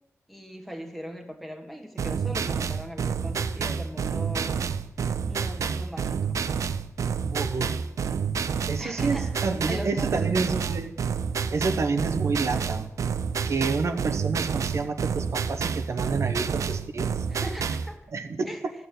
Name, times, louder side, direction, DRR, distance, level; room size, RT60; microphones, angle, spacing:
voice 1, 0.3-4.6 5.3-6.4 8.8-10.3 17.3-18.0 18.4-18.7, equal, ahead, 3 dB, 1.5 m, -39 dB
sound 1, 2.0-17.9, right 6 dB, 85° right, 0.6 m, -29 dB
voice 2, 7.3-7.8 8.7-10.9 11.5-12.9 13.4-17.1 18.1-18.5, right 4 dB, 65° right, 6 dB, 1.0 m, -29 dB
13.0 x 6.9 x 9.1 m, 0.96 s
wide cardioid pair, 100°, 5 cm